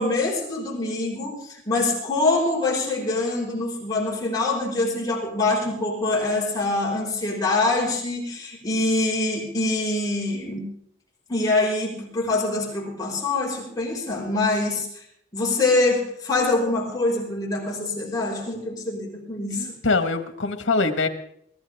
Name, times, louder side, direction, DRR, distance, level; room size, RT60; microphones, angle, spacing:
voice 1, 0.0-10.7 11.3-15.0 15.3-19.7, left 2 dB, 20° left, -3 dB, 5.7 m, -24 dB
voice 2, 19.5-21.1, left 3 dB, 85° left, 8 dB, 1.7 m, -23 dB
23.0 x 15.5 x 3.6 m, 0.70 s
head